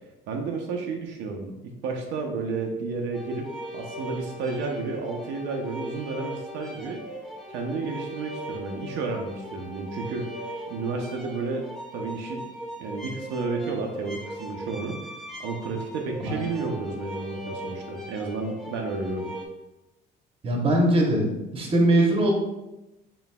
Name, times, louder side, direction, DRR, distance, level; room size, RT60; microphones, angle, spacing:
voice 1, 0.3-7.0 7.5-11.7 11.9-12.5 12.8-15.0 15.4-19.3, right 4 dB, 80° right, 2 dB, 0.6 m, -32 dB
sound 1, 3.1-19.5, equal, ahead, 0.5 m, -39 dB
voice 2, 20.4-21.3 21.5-22.3, right 1 dB, 30° right, 0 dB, 0.9 m, -21 dB
4.1 x 3.8 x 2.2 m, 0.97 s
cardioid pair, 120°, 19 cm